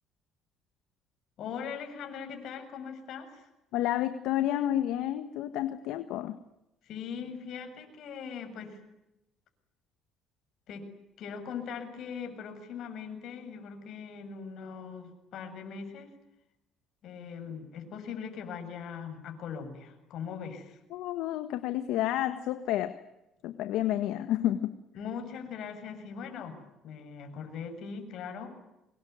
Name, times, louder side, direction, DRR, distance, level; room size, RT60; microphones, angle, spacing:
voice 1, 1.4-3.5 6.8-8.8 10.7-10.9 11.2-16.1 17.0-20.8 24.9-28.5, left 6 dB, 60° left, 7 dB, 7.4 m, -40 dB
voice 2, 3.7-6.4 20.9-23.0 23.4-24.8, left 13 dB, 80° left, 10 dB, 1.6 m, -30 dB
25.5 x 22.5 x 9.6 m, 0.91 s
cardioid pair, 115°, 0 cm